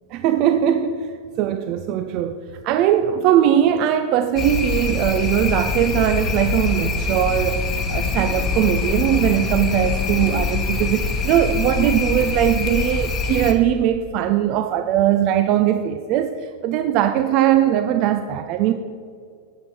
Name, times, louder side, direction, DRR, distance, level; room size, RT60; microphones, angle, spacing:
voice 1, 0.1-1.1 1.4-2.4 2.6-7.6 7.9-18.7, right 11 dB, 40° right, 8 dB, 0.4 m, -20 dB
sound 1, 4.4-13.5, left 4 dB, 25° left, 1.0 m, -24 dB
8.6 x 8.4 x 4.4 m, 2.3 s
figure-of-eight pair, 90°, 0 cm